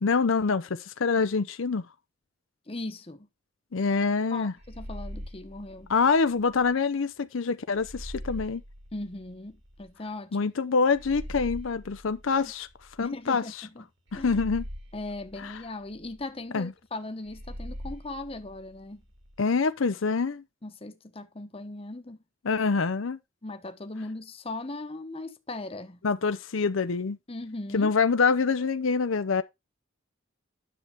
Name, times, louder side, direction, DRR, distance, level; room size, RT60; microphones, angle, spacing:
voice 1, 0.0-1.9 3.7-4.5 5.9-8.6 10.3-12.7 13.0-13.7 14.1-14.6 15.4-15.6 16.5-16.7 19.4-20.4 22.4-23.2 26.0-27.2 27.7-29.4, left 4 dB, 75° left, 0.6 m, -25 dB
voice 2, 2.7-3.3 4.3-5.9 8.9-10.5 13.0-13.8 14.1-14.4 14.9-19.0 20.6-22.2 23.4-26.0 27.3-27.9, left 2 dB, 30° left, 1.0 m, -38 dB
sound 1, 4.6-6.7 7.7-9.9 10.9-13.3 14.1-16.2 17.2-19.4, equal, 55° right, 2.5 m, -42 dB
10.0 x 6.7 x 3.5 m
head